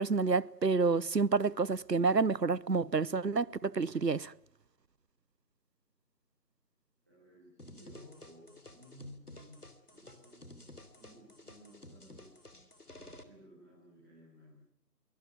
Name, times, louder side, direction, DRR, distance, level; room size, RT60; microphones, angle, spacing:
voice 1, 0.0-4.3, right 4 dB, 85° right, 1.0 m, -29 dB
voice 2, 7.1-12.4 12.9-14.6, equal, 10° right, 4.3 m, -56 dB
sound 1, 7.6-13.2, left 1 dB, 70° left, 3.5 m, -53 dB
24.0 x 20.5 x 9.4 m
figure-of-eight pair, 170°, 48 cm